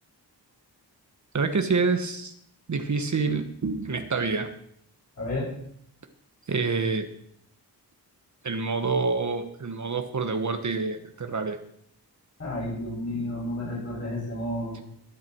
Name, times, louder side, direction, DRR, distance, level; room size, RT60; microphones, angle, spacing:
voice 1, 1.3-2.3 2.7-4.5 6.5-7.1 8.4-11.6, right 4 dB, 45° right, 7 dB, 1.3 m, -27 dB
voice 2, 5.2-5.5 12.4-14.8, left 1 dB, 40° left, -5 dB, 7.1 m, -31 dB
21.0 x 9.5 x 4.6 m, 0.69 s
wide cardioid pair, 130°, 39 cm